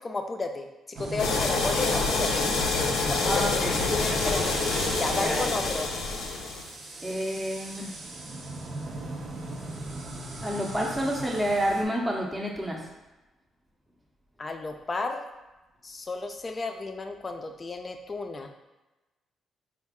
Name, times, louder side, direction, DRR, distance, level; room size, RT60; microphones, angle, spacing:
voice 1, 0.0-2.6 3.1-4.6 5.0-5.9 14.4-15.2 15.8-18.5, left 3 dB, 30° left, 5 dB, 0.4 m, -33 dB
sound 1, 0.9-11.8, right 2 dB, 50° right, 0.7 m, -37 dB
sound 2, 1.2-6.7, left 3 dB, 90° left, 0.6 m, -27 dB
voice 2, 3.2-3.8 5.1-5.6 7.0-7.9 10.4-12.9, equal, 10° right, -2 dB, 0.7 m, -29 dB
4.3 x 2.4 x 3.5 m, 1.1 s
cardioid pair, 90°, 0 cm